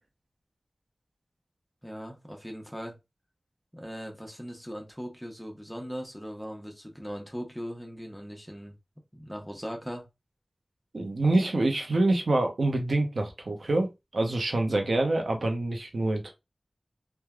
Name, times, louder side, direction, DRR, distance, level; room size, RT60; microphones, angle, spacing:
voice 1, 1.8-2.9 3.7-8.7 9.1-10.0, equal, 5° left, 0.8 m, -39 dB
voice 2, 10.9-16.3, right 2 dB, 80° right, 0.6 m, -26 dB
3.2 x 2.2 x 2.3 m
wide cardioid pair, 70°, 0 cm